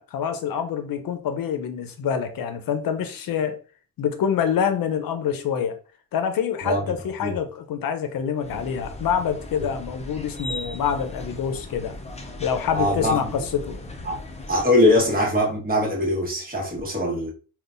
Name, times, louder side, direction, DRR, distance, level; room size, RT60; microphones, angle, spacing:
voice 1, 0.0-3.6 4.0-5.8 6.1-11.9 12.4-13.8, left 7 dB, 75° left, 0.7 m, -26 dB
sound 1, 8.4-14.6, left 1 dB, 20° left, 0.6 m, -37 dB
voice 2, 12.7-13.3 14.0-14.2 14.5-17.3, left 1 dB, 25° right, 1.3 m, -22 dB
3.7 x 2.4 x 2.5 m
cardioid pair, 70°, 34 cm